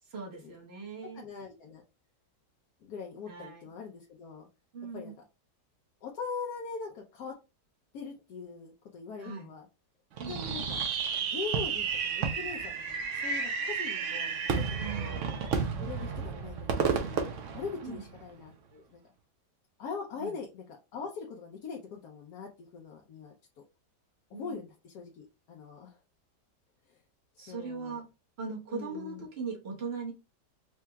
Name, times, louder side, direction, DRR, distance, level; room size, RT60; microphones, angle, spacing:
voice 1, 0.1-1.3 3.3-3.7 4.7-5.1 9.2-9.5 10.2-10.4 14.8-15.2 17.8-18.0 20.2-20.3 24.3-24.6 27.4-28.0 28.4-30.1, right 4 dB, 40° right, -1 dB, 1.3 m, -39 dB
voice 2, 1.1-1.8 2.8-4.5 4.9-5.1 6.0-7.4 7.9-9.7 10.3-10.8 11.1-15.1 15.8-17.2 17.5-19.0 19.8-23.3 24.4-26.0 26.9-27.0 27.4-28.0 28.7-29.3, left 5 dB, 70° left, 0 dB, 1.1 m, -42 dB
Fireworks, 10.2-18.3, right 6 dB, 60° right, 0.9 m, -32 dB
4.6 x 2.8 x 2.2 m, 0.28 s
omnidirectional pair, 1.8 m